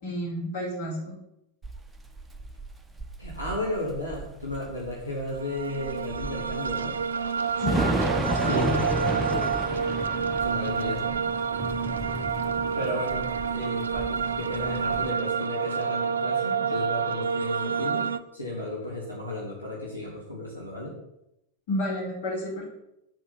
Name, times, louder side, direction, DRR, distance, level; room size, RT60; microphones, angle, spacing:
voice 1, 0.0-1.2 7.6-8.0 21.7-22.7, left 1 dB, 50° left, -2 dB, 4.7 m, -31 dB
Thunder / Rain, 1.6-15.1, right 1 dB, 10° right, 0.9 m, -33 dB
voice 2, 3.2-7.0 8.1-9.5 10.1-11.2 12.7-20.9, left 1 dB, 85° left, -5 dB, 3.1 m, -34 dB
sound 1, 5.3-18.2, right 6 dB, 70° right, 0.6 m, -28 dB
9.2 x 5.6 x 7.7 m, 0.84 s
figure-of-eight pair, 90°, 0 cm